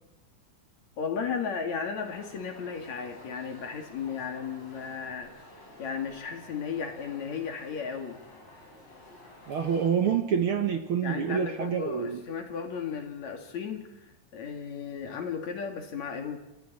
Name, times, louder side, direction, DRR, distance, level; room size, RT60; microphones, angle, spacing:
voice 1, 1.0-5.3 5.8-8.2 11.0-13.9 14.3-16.4, left 6 dB, 65° left, 5 dB, 3.6 m, -35 dB
sound 1, 2.0-9.9, left 1 dB, 50° left, 6.9 m, -51 dB
voice 2, 9.5-12.2, right 7 dB, 55° right, 7 dB, 1.8 m, -27 dB
26.5 x 26.5 x 4.3 m, 0.93 s
omnidirectional pair, 3.5 m